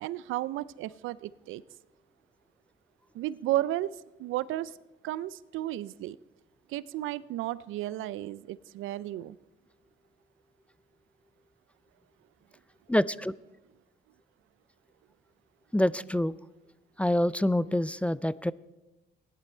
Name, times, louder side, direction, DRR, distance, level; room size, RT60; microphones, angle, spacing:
voice 1, 0.0-1.6 3.1-3.9 4.2-4.7 5.0-6.2 6.7-9.4, right 14 dB, 85° right, 20 dB, 0.4 m, -33 dB
voice 2, 12.9-13.3 15.7-16.3 17.0-18.5, left 1 dB, 5° left, 19 dB, 0.3 m, -26 dB
16.0 x 11.0 x 4.4 m, 1.0 s
cardioid pair, 90°, 20 cm